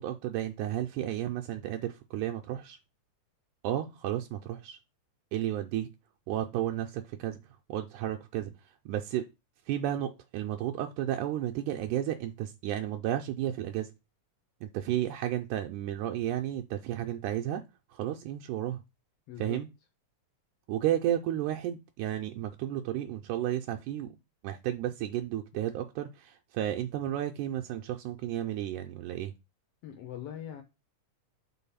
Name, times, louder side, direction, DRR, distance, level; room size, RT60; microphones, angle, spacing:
voice 1, 0.0-2.8 3.6-4.8 5.3-5.9 6.3-7.4 7.7-8.5 8.9-9.3 9.7-13.9 14.6-17.6 17.9-18.8 19.4-19.7 20.7-24.2 24.4-29.3, right 12 dB, 80° right, 2.0 m, -32 dB
voice 2, 19.3-19.6 29.8-30.6, left 10 dB, 75° left, 1.5 m, -41 dB
4.6 x 3.8 x 5.5 m
omnidirectional pair, 3.6 m